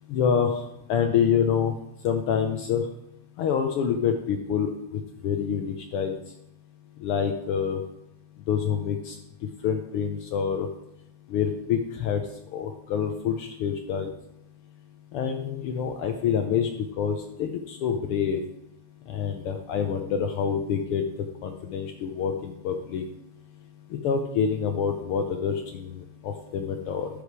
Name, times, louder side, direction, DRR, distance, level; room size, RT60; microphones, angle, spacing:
voice 1, 0.1-0.6 0.9-1.7 2.0-2.9 3.4-4.7 5.2-6.2 7.0-7.8 8.5-9.2 9.6-10.7 11.3-12.2 12.5-14.1 15.1-16.7 17.0-18.4 19.1-21.0 21.4-23.0 23.9-27.1, left 7 dB, 90° left, 5 dB, 1.2 m, -26 dB
11.5 x 5.2 x 4.6 m, 0.81 s
omnidirectional pair, 3.3 m